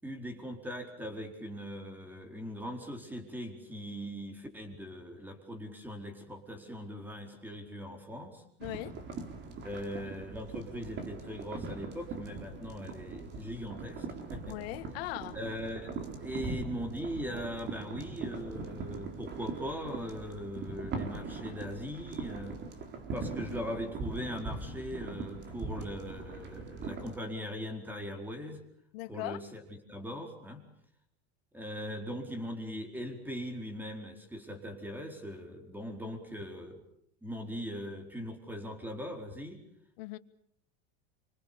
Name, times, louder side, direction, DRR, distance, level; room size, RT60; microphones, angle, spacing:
voice 1, 0.0-8.4 9.6-14.6 15.3-22.6 23.1-28.6 29.1-29.6 29.9-30.6 31.5-36.8 37.2-39.6, equal, 5° right, 5 dB, 4.5 m, -40 dB
voice 2, 8.6-8.9 14.5-15.4 28.9-29.4 40.0-40.2, left 19 dB, 70° left, 11 dB, 1.8 m, -39 dB
sound 1, 8.6-27.2, right 4 dB, 35° right, 4.0 m, -41 dB
27.5 x 25.5 x 7.0 m, 0.67 s
supercardioid pair, 145°, 31 cm